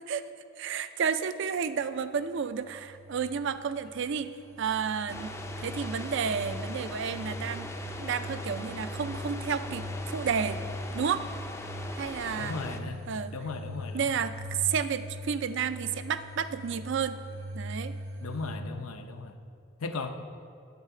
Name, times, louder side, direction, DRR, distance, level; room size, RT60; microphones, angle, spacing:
voice 1, 0.6-5.3 5.6-7.7 8.0-10.6 10.9-11.3 12.0-12.6 13.1-13.4 13.9-17.2 17.5-17.9, right 6 dB, 55° right, 12 dB, 0.4 m, -31 dB
sound 1, 2.3-18.6, equal, 75° right, 0.8 m, -41 dB
sound 2, 5.1-12.8, left 2 dB, 15° left, 0.4 m, -41 dB
voice 2, 12.4-13.0 13.3-14.1 18.2-19.3 19.8-20.1, left 3 dB, 80° left, 7 dB, 0.7 m, -36 dB
9.5 x 8.3 x 4.8 m, 2.5 s
head